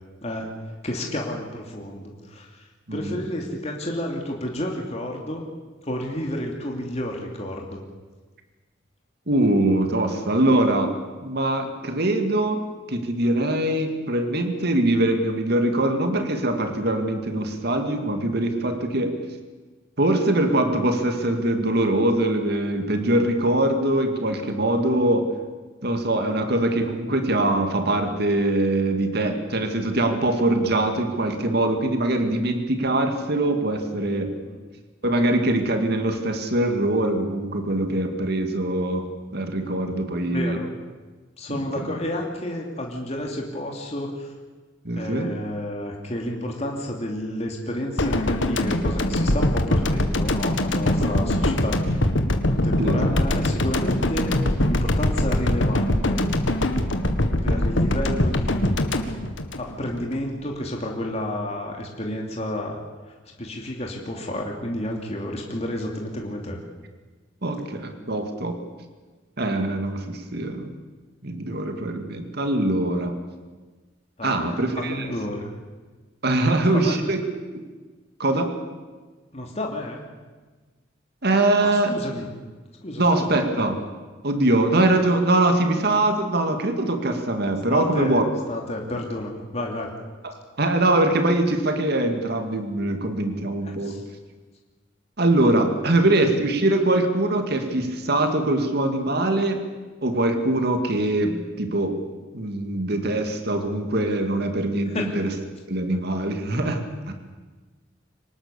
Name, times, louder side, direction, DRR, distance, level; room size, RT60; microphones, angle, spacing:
voice 1, 0.2-5.4 5.8-7.8 34.4-34.6 40.2-40.7 41.4-44.3 44.9-52.0 52.5-56.2 57.4-59.1 59.6-62.8 63.1-66.6 74.2-75.5 76.4-77.0 79.3-80.1 81.6-82.3 82.8-83.4 87.7-88.2 88.5-90.0 93.6-94.0 96.0-96.1 104.9-105.2, left 1 dB, 35° left, 0 dB, 2.8 m, -31 dB
voice 2, 9.3-11.0 11.2-19.2 20.0-25.3 25.8-34.3 35.0-39.1 39.3-40.6 41.5-41.8 44.8-45.3 52.8-53.0 57.5-57.6 67.4-68.6 69.4-70.7 71.2-73.1 74.2-75.1 76.2-77.2 77.5-77.6 78.2-78.5 81.2-82.0 83.0-83.8 84.2-88.2 90.2-94.0 95.2-99.6 100.0-102.0 102.3-105.3 105.7-107.1, right 1 dB, 55° right, 6 dB, 2.3 m, -23 dB
sound 1, 48.0-60.2 60.4-60.6, left 1 dB, 70° left, 1.7 m, -22 dB
25.0 x 19.5 x 7.1 m, 1.3 s
head